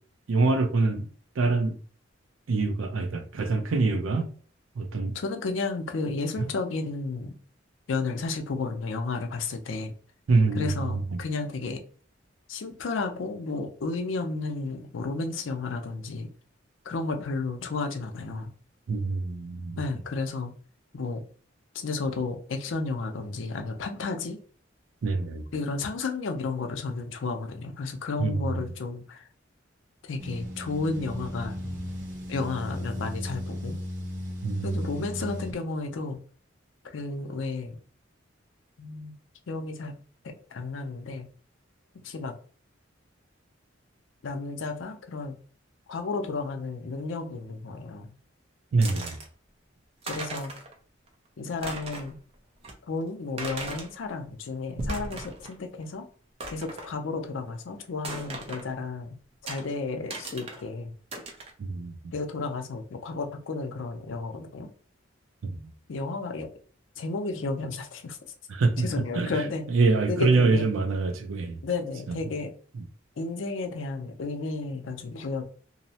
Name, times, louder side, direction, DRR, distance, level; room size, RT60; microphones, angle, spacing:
voice 1, 0.3-1.1 1.4-1.7 2.5-4.3 4.8-5.1 10.3-10.8 18.9-19.8 25.0-25.4 28.2-28.4 34.4-34.7 48.7-49.2 61.6-62.1 65.4-65.6 68.5-68.9 69.2-69.3 69.7-71.6, right 3 dB, 90° right, 0.5 m, -25 dB
voice 2, 5.1-7.3 7.9-9.9 10.5-11.8 12.5-16.3 16.8-18.5 19.8-20.5 20.9-21.2 21.7-24.4 25.5-29.2 30.0-31.6 32.3-33.8 34.6-36.2 36.8-37.8 38.8-39.2 39.5-39.9 40.2-41.3 41.9-42.3 44.2-45.3 45.9-48.1 50.1-50.5 51.4-52.2 52.9-56.1 56.5-59.1 59.4-60.9 62.1-64.7 65.9-66.5 67.0-68.2 68.8-69.6 70.1-70.7 71.6-72.5 73.2-75.4, left 3 dB, 75° left, 0.5 m, -32 dB
sound 1, 30.2-35.6, equal, 65° right, 1.0 m, -36 dB
sound 2, 48.8-49.3 49.8-49.9 50.0-50.7 51.1-51.2 51.5-52.1 52.6-52.7 53.4-53.9 54.6-55.6 55.8-55.9 56.4-56.9 58.0-58.7 59.5-59.6 60.1-60.6 61.1-61.5, right 2 dB, 30° right, 0.4 m, -37 dB
2.6 x 2.0 x 2.7 m
head